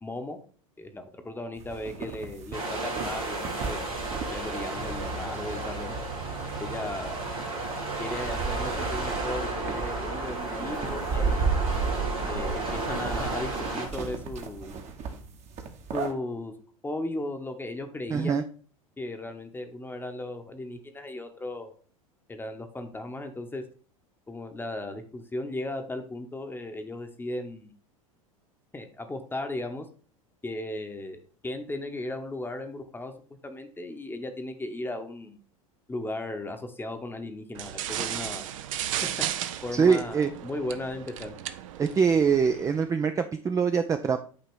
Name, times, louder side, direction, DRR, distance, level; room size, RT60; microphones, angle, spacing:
voice 1, 0.0-0.4 0.8-3.8 4.3-5.9 6.6-7.2 8.0-11.5 12.3-14.8 15.9-16.5 16.8-18.5 19.0-21.7 22.3-23.6 24.3-27.7 28.7-29.9 30.4-31.2 31.4-33.1 33.4-35.4 35.9-38.5 39.0-39.1 39.6-41.3, left 2 dB, 10° left, 6 dB, 0.9 m, -36 dB
sound 1, 1.6-16.1, right 5 dB, 40° right, 1.1 m, -34 dB
sound 2, 2.5-13.9, right 2 dB, 85° right, 2.2 m, -33 dB
voice 2, 18.1-18.4 39.7-40.3 41.8-44.2, right 6 dB, 15° right, 8 dB, 0.4 m, -24 dB
sound 3, 37.5-42.8, right 11 dB, 65° right, 0.6 m, -35 dB
8.5 x 2.9 x 4.6 m, 0.41 s
hypercardioid pair, 85°, 18 cm